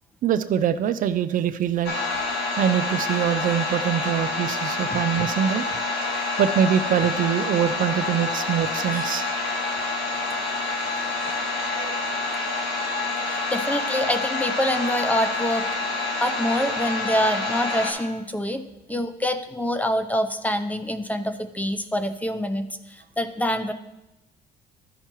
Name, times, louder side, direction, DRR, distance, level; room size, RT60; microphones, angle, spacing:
voice 1, 0.2-1.9 2.6-5.6 6.4-9.3 11.8-12.0, right 9 dB, 55° right, 12 dB, 0.4 m, -23 dB
sound 1, 1.8-17.9, left 3 dB, 85° left, 1.7 m, -27 dB
voice 2, 13.2-15.7 16.2-18.6 18.9-23.7, equal, 10° left, 8 dB, 0.6 m, -26 dB
13.0 x 5.6 x 3.0 m, 0.92 s
cardioid pair, 110°, 17 cm